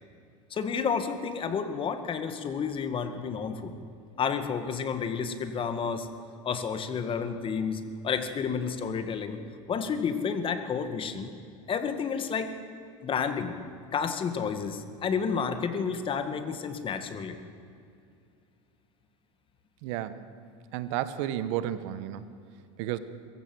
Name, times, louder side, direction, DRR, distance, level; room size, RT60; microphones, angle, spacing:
voice 1, 0.5-3.7 4.2-6.1 6.4-9.4 9.7-11.3 11.7-12.5 13.0-13.6 13.9-17.4, left 6 dB, 35° left, 9 dB, 1.9 m, -30 dB
voice 2, 19.8-20.2 20.7-22.2 22.8-23.0, right 12 dB, 75° right, 13 dB, 1.3 m, -32 dB
23.0 x 15.0 x 7.9 m, 2.5 s
supercardioid pair, 110°, 16 cm